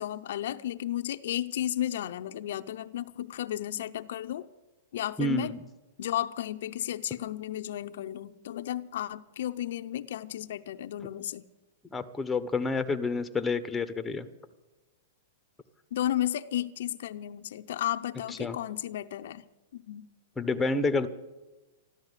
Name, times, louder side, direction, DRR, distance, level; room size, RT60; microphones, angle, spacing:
voice 1, 0.0-4.5 4.9-5.6 6.0-11.5 15.9-19.5 19.7-20.1, left 12 dB, 70° left, 0.6 m, -33 dB
voice 2, 5.2-5.6 11.9-14.3 18.4-18.6 20.4-21.1, left 3 dB, 10° left, 0.9 m, -29 dB
13.0 x 13.0 x 8.2 m
hypercardioid pair, 145°, 0 cm